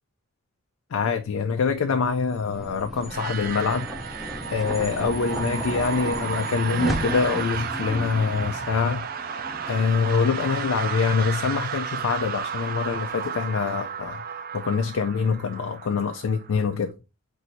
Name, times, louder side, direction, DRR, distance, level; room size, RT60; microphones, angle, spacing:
voice 1, 0.9-3.9 4.5-9.1 9.7-14.2 14.5-16.9, left 5 dB, 85° left, 0.4 m, -25 dB
sound 1, 1.8-12.4, equal, ahead, 0.6 m, -35 dB
sound 2, 3.0-16.7, right 7 dB, 45° right, 0.4 m, -33 dB
4.3 x 2.7 x 3.9 m
head